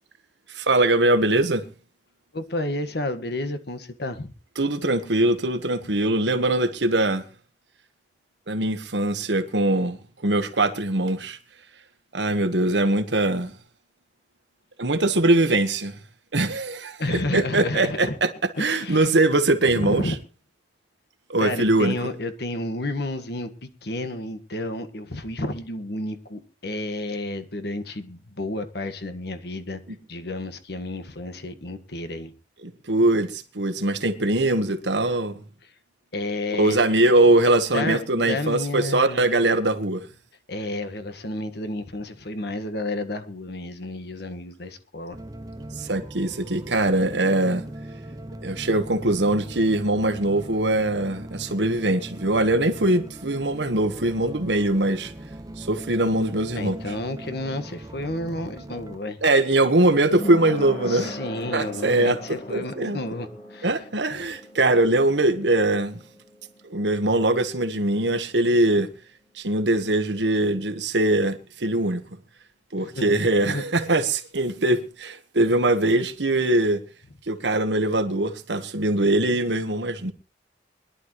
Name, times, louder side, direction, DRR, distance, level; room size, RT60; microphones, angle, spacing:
voice 1, 0.5-1.6 4.6-7.2 8.5-11.4 12.1-13.5 14.8-16.0 16.3-20.1 21.3-22.1 29.9-30.0 32.6-35.4 36.6-40.1 45.8-47.6 48.4-55.1 55.6-56.9 59.2-61.2 61.5-62.2 62.5-63.0 63.6-66.0 66.6-68.9 69.3-72.0 72.7-76.8 77.3-80.1, right 2 dB, 85° right, 1.4 m, -22 dB
voice 2, 2.3-4.3 17.0-18.1 18.6-19.1 19.8-20.1 21.4-29.8 30.1-32.3 36.1-36.8 37.7-39.3 40.5-45.2 56.5-59.2 60.9-63.7 64.1-64.3 72.8-73.1 73.5-73.6, left 2 dB, 65° left, 1.6 m, -31 dB
sound 1, 45.1-59.0, right 1 dB, 20° right, 0.7 m, -39 dB
sound 2, 57.8-68.5 68.8-68.9, equal, 45° left, 3.6 m, -41 dB
22.0 x 11.5 x 3.2 m
head